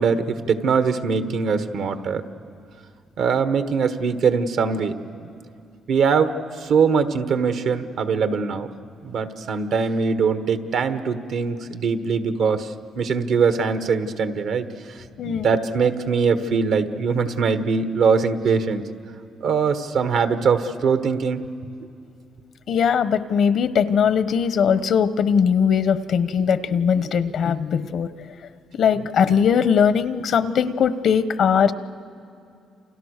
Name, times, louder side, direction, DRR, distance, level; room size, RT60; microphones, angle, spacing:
voice 1, 0.0-2.2 3.2-4.9 5.2-5.3 5.9-6.3 6.6-8.7 9.0-12.7 13.0-14.7 15.2-18.8 19.4-21.4, right 5 dB, 70° right, 9 dB, 1.4 m, -22 dB
voice 2, 22.7-28.1 28.7-31.7, left 7 dB, 65° left, 13 dB, 1.0 m, -20 dB
29.0 x 28.5 x 6.6 m, 2.5 s
cardioid pair, 90°, 0 cm